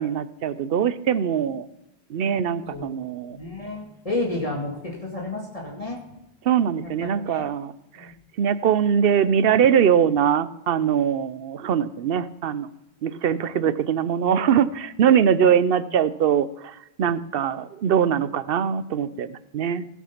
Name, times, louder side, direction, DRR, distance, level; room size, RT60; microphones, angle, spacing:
voice 1, 0.0-1.7 2.1-3.4 6.5-7.7 8.0-8.1 8.4-12.7 13.0-19.9, right 8 dB, 70° right, 15 dB, 0.8 m, -22 dB
voice 2, 3.3-6.0 6.8-7.5 8.0-8.2, left 2 dB, 35° left, -3 dB, 2.1 m, -31 dB
17.0 x 6.0 x 5.8 m, 0.91 s
omnidirectional pair, 1.0 m